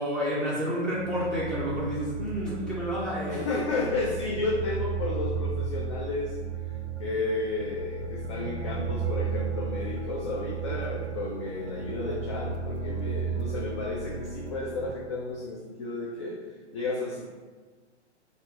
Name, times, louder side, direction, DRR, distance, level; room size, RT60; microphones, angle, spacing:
voice 1, 0.0-3.5, equal, ahead, -9 dB, 0.9 m, -30 dB
sound 1, 0.9-15.0, right 5 dB, 70° right, 0.5 m, -34 dB
voice 2, 3.3-6.4 7.0-16.4 16.7-17.3, left 3 dB, 25° left, -3 dB, 0.4 m, -32 dB
4.2 x 2.4 x 3.5 m, 1.4 s
figure-of-eight pair, 120°, 35 cm